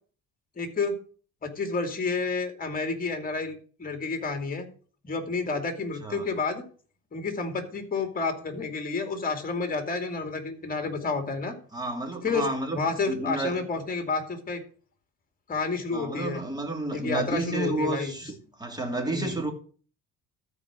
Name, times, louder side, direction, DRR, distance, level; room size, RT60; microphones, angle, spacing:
voice 1, 0.6-1.0 1.4-4.7 5.0-6.6 7.1-11.5 12.2-14.6 15.5-16.4 16.9-18.1 19.1-19.4, left 4 dB, 30° left, 2.6 m, -30 dB
voice 2, 11.7-12.8 13.1-13.6 15.9-19.5, right 2 dB, 15° right, 2.7 m, -31 dB
13.5 x 4.9 x 6.2 m
cardioid pair, 105°, 29 cm